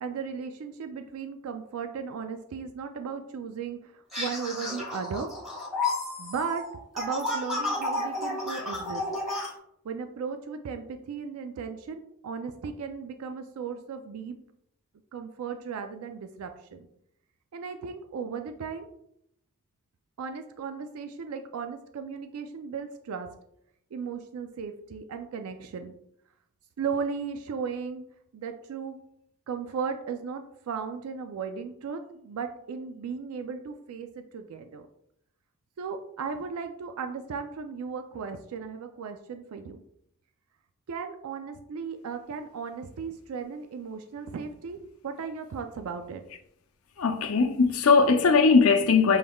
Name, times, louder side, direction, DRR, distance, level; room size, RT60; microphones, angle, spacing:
voice 1, 0.0-5.3 6.2-6.6 6.9-9.0 9.8-14.4 15.1-16.9 17.5-18.9 20.2-23.3 23.9-25.9 26.8-28.0 28.3-29.0 29.5-34.9 35.8-39.8 40.9-46.2, right 6 dB, 85° right, 0.4 m, -36 dB
sound 1, 4.1-9.5, left 2 dB, ahead, 1.5 m, -32 dB
voice 2, 47.0-49.2, left 4 dB, 70° left, 0.5 m, -20 dB
6.3 x 3.5 x 2.3 m
head